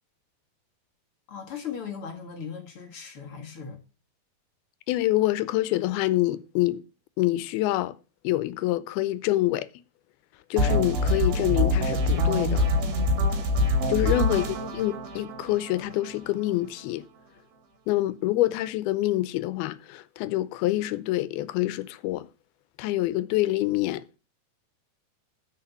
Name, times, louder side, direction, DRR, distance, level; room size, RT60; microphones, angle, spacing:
voice 1, 1.3-3.8 14.2-14.5, left 7 dB, 45° left, 2.2 m, -38 dB
voice 2, 4.9-6.8 7.2-8.0 8.2-9.7 10.5-12.7 13.9-17.1 17.9-22.3 22.8-24.0, left 16 dB, 90° left, 2.6 m, -26 dB
sound 1, 10.6-16.5, left 1 dB, 80° right, 4.0 m, -25 dB
13.0 x 5.0 x 7.1 m
omnidirectional pair, 4.3 m